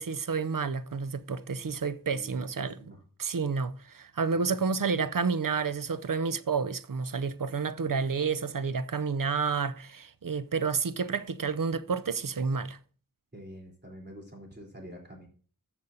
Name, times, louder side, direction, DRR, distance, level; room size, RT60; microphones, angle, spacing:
voice 1, 0.0-2.8 3.2-12.8, right 5 dB, 65° right, 0.6 m, -30 dB
voice 2, 2.1-3.0 4.3-4.7 13.3-15.3, equal, 30° right, 3.6 m, -47 dB
13.0 x 6.9 x 2.7 m
wide cardioid pair, 50°, 36 cm